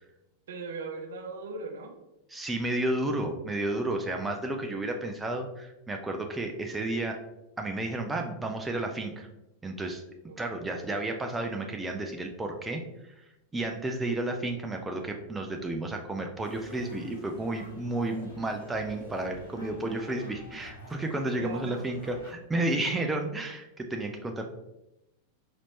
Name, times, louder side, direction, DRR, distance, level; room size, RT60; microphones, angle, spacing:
voice 1, 0.5-1.9 10.3-10.6 21.4-21.8, right 3 dB, 60° right, 4 dB, 0.6 m, -39 dB
voice 2, 2.3-7.2 7.6-9.3 9.6-10.0 10.4-12.8 13.5-24.4, right 2 dB, 10° right, 3 dB, 0.4 m, -32 dB
sound 1, 16.4-22.3, left 1 dB, 80° left, 1.2 m, -48 dB
4.2 x 2.9 x 2.9 m, 0.90 s
figure-of-eight pair, 90°, 0 cm